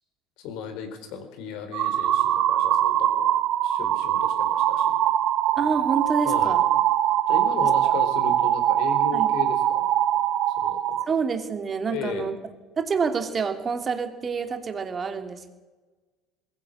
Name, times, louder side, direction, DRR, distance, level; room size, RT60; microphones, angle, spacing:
voice 1, 0.4-3.3 3.6-5.0 6.2-6.6 7.3-9.9 10.6-11.0 11.9-12.3, left 7 dB, 60° left, 7 dB, 3.8 m, -35 dB
sound 1, 1.7-11.0, right 11 dB, 50° right, 1.5 m, -22 dB
voice 2, 5.6-6.6 9.1-9.3 11.1-12.3 12.8-15.5, right 5 dB, 30° right, 6 dB, 2.8 m, -27 dB
21.5 x 14.0 x 8.6 m, 1.2 s
figure-of-eight pair, 65°, 0 cm